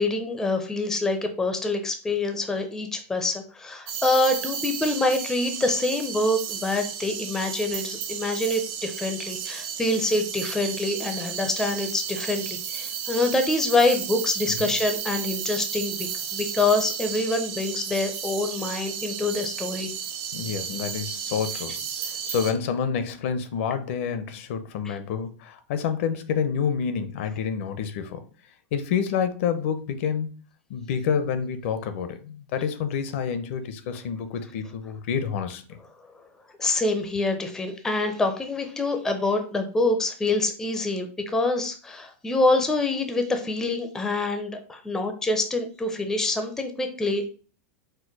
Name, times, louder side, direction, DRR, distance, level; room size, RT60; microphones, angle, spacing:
voice 1, 0.0-16.0 16.3-19.9 24.8-24.9 36.6-47.3, left 2 dB, 5° left, 0.5 m, -26 dB
sound 1, 3.9-22.5, right 8 dB, 45° right, 0.7 m, -33 dB
voice 2, 20.3-21.8 22.3-28.2 28.7-30.3 30.7-35.8, left 7 dB, 60° left, 0.6 m, -28 dB
4.5 x 2.1 x 4.5 m
supercardioid pair, 160°, 8 cm